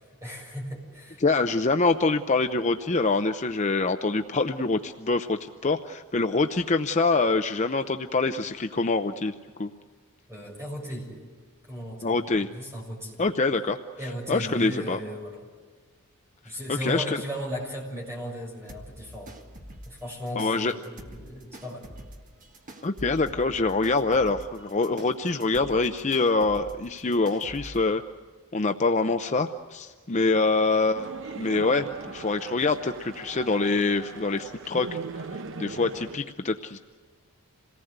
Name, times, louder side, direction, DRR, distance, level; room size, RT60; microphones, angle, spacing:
voice 1, 0.0-1.2 10.3-11.2 11.7-13.2 14.0-15.4 16.4-19.3 19.9-21.9, equal, 10° right, -1 dB, 6.8 m, -36 dB
voice 2, 1.2-9.7 12.0-12.5 13.2-13.8 14.3-15.0 16.7-17.2 20.4-20.7 22.8-28.0 28.5-31.1 31.3-35.0 35.3-36.8, left 3 dB, 30° left, 8 dB, 0.6 m, -25 dB
sound 1, 18.7-27.8, equal, 35° right, 1.7 m, -46 dB
sound 2, 30.9-36.2, right 4 dB, 55° right, 0.9 m, -39 dB
27.5 x 18.5 x 8.0 m, 1.5 s
head